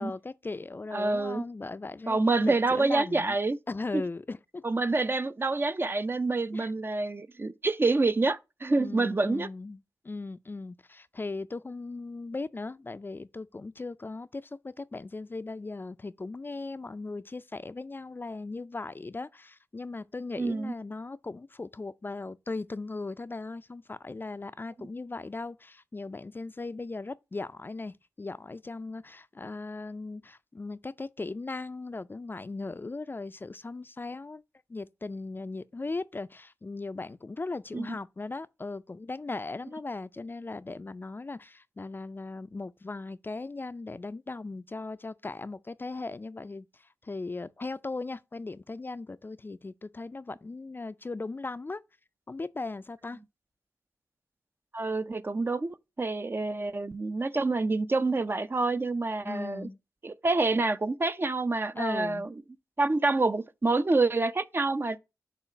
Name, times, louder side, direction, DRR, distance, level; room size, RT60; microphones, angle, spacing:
voice 1, 0.0-3.4 3.7-4.6 6.5-6.7 8.8-9.8 10.0-34.4 34.7-51.8 52.3-53.2 59.2-59.8 61.8-62.3, left 3 dB, 30° left, 0.3 m, -38 dB
voice 2, 0.9-1.4 2.1-3.6 3.9-4.0 4.6-9.5 20.4-20.7 37.7-38.0 54.7-59.7 60.0-62.3 62.8-65.0, right 3 dB, 35° right, 0.5 m, -27 dB
6.9 x 2.4 x 5.5 m
cardioid pair, 45°, 7 cm